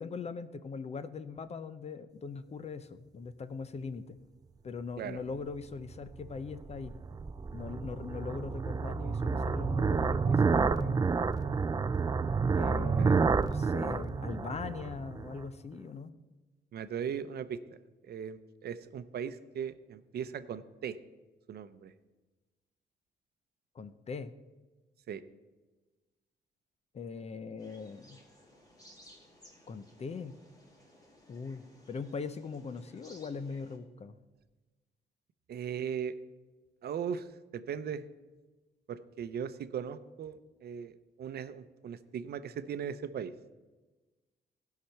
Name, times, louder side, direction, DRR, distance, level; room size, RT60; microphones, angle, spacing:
voice 1, 0.0-4.2 4.6-6.9 7.5-11.0 12.5-16.2 23.7-24.3 26.9-28.2 29.7-30.4 31.3-34.2, left 5 dB, 35° left, 13 dB, 0.6 m, -41 dB
sound 1, 5.9-15.4, right 5 dB, 20° right, 0.3 m, -30 dB
voice 2, 16.7-17.6 18.1-21.0 21.5-21.9 25.1-25.2 35.5-36.1 36.8-37.3 37.5-38.0 38.9-43.3, right 8 dB, 65° right, 12 dB, 0.7 m, -38 dB
sound 2, 27.6-33.8, equal, 20° left, 2.3 m, -59 dB
16.0 x 5.8 x 5.8 m, 1.2 s
cardioid pair, 130°, 18 cm